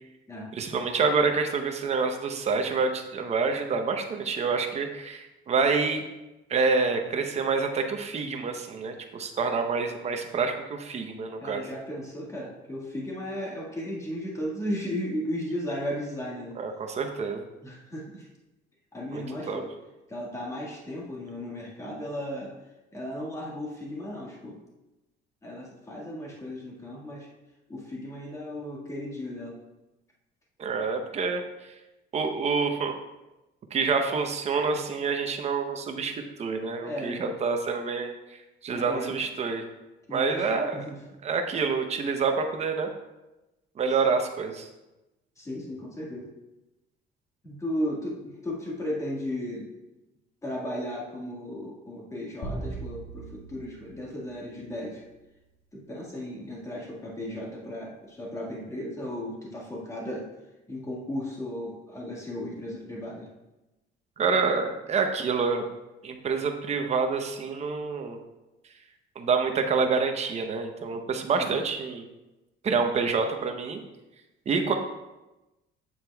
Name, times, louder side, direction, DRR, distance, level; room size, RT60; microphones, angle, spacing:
voice 1, 0.6-6.0 6.5-11.6 16.6-17.5 19.1-19.6 30.6-31.4 32.1-32.9 33.7-38.1 38.6-39.6 40.1-40.8 41.2-42.9 43.8-44.7 64.2-65.6 66.0-68.2 69.2-72.1 72.6-73.8 74.5-74.8, right 4 dB, 35° right, 5 dB, 0.8 m, -27 dB
voice 2, 11.4-16.6 17.6-18.3 18.9-19.7 20.1-22.5 22.9-24.6 25.4-27.3 27.7-29.6 36.8-37.3 38.7-39.2 40.1-41.0 45.4-46.3 47.4-49.7 50.4-55.0 55.7-60.3 60.7-63.3 71.4-71.5, left 1 dB, 15° left, -3 dB, 1.8 m, -35 dB
sound 1, 52.4-55.0, right 2 dB, 60° left, 1.9 m, -39 dB
8.7 x 7.4 x 2.3 m, 1.0 s
cardioid pair, 140°, 19 cm